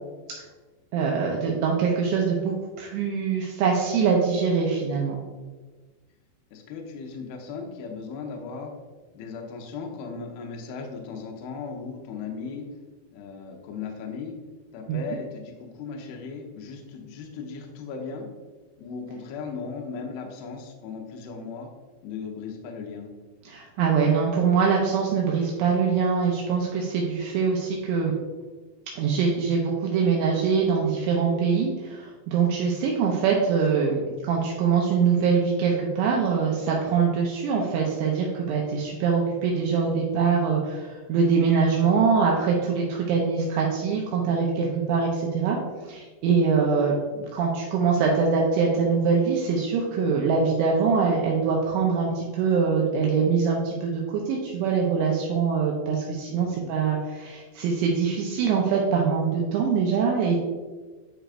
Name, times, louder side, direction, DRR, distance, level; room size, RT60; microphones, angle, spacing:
voice 1, 0.9-5.2 14.9-15.0 23.5-28.1 29.0-45.6 45.8-60.4, right 5 dB, 80° right, -2 dB, 2.8 m, -23 dB
voice 2, 6.5-8.7 9.1-12.7 13.1-14.4 14.7-18.3 18.8-21.7 22.0-23.1 56.3-56.7, left 5 dB, 90° left, 1 dB, 2.2 m, -37 dB
10.0 x 4.9 x 2.5 m, 1.3 s
omnidirectional pair, 5.8 m